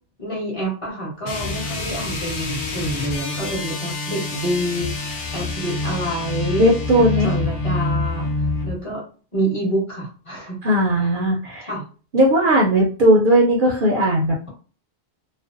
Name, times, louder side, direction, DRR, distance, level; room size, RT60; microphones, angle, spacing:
voice 1, 0.2-8.3 8.6-9.0 9.3-10.5 10.9-11.1 11.7-11.8, right 1 dB, 30° left, -4 dB, 1.0 m, -27 dB
sound 1, 1.2-8.8, left 2 dB, 60° left, 0.6 m, -26 dB
voice 2, 6.6-7.3 10.6-11.7 12.1-14.5, right 1 dB, 60° right, -2 dB, 0.6 m, -17 dB
2.4 x 2.0 x 2.5 m, 0.38 s
omnidirectional pair, 1.1 m